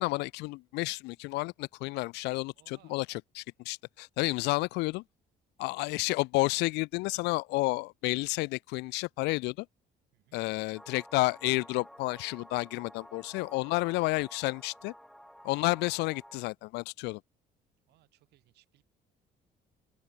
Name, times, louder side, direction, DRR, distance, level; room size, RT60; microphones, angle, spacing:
voice 1, 0.0-5.0 5.6-9.7 10.3-14.9 15.4-17.2, left 23 dB, 85° left, 0.4 m, -31 dB
voice 2, 2.5-3.0 4.2-4.6 10.1-10.4 17.9-18.8, right 17 dB, 80° right, 4.1 m, -65 dB
sound 1, 10.7-16.4, equal, ahead, 2.6 m, -52 dB
cardioid pair, 110°, 17 cm